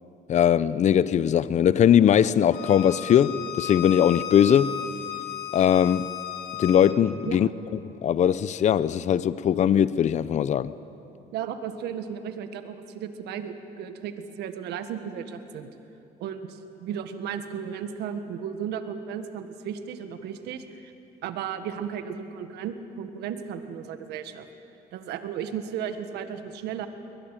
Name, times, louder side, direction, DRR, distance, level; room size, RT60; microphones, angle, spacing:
voice 1, 0.3-4.8 5.5-6.1 6.6-7.5 8.0-10.7, left 9 dB, 45° left, 0.6 m, -20 dB
Bowed string instrument, 2.5-7.0, left 10 dB, 90° left, 1.7 m, -35 dB
voice 2, 11.3-15.7 16.2-20.9 21.2-24.5 24.9-26.9, right 8 dB, 80° right, 1.6 m, -35 dB
22.0 x 21.0 x 9.1 m
cardioid pair, 110°, 17 cm